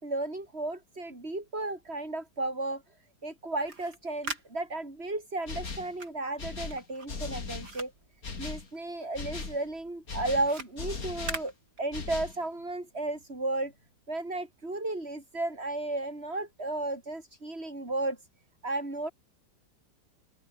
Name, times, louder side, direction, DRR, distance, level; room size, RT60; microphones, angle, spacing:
voice 1, 0.0-2.8 3.2-7.9 8.4-11.5 11.8-13.7 14.1-18.2 18.6-19.1, right 2 dB, 30° right, 5.8 m, -34 dB
sound 1, 3.6-9.0 9.3-12.3, right 3 dB, 60° right, 5.6 m, -43 dB
sound 2, 5.5-6.0 6.4-7.8 8.2-8.7 9.1-9.6 10.1-11.4 11.9-12.4, left 4 dB, 50° left, 3.2 m, -38 dB
open air
omnidirectional pair, 2.0 m